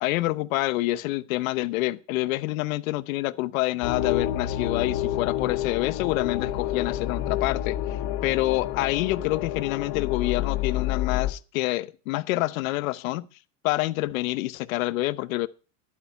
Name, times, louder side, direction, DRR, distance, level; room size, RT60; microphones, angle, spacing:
voice 1, 0.0-13.3 13.6-15.5, left 18 dB, 85° left, 0.9 m, -27 dB
sound 1, 3.8-11.3, left 12 dB, 65° left, 1.5 m, -29 dB
12.0 x 8.7 x 5.3 m
supercardioid pair, 130°, 40 cm